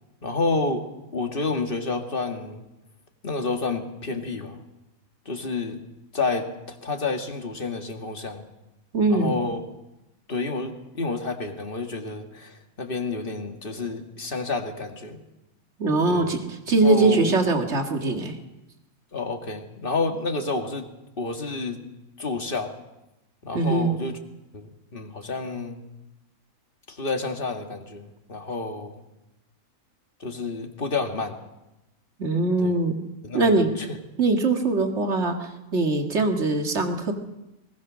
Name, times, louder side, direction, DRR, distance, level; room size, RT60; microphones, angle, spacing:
voice 1, 0.2-0.9 1.1-2.7 3.2-4.6 5.3-5.8 6.1-8.5 9.1-9.6 10.3-15.2 16.1-16.3 16.8-17.4 19.1-20.9 21.2-21.8 22.2-22.7 23.4-24.2 24.5-25.8 26.9-29.0 30.2-31.4 32.6-32.8 33.2-34.0, left 3 dB, 40° left, 4 dB, 2.1 m, -29 dB
voice 2, 8.9-9.4 15.8-16.4 16.7-18.4 23.5-24.0 32.2-33.0 33.3-33.7 34.2-37.1, right 3 dB, 50° right, 3 dB, 2.3 m, -22 dB
20.5 x 20.5 x 6.4 m, 0.95 s
omnidirectional pair, 1.5 m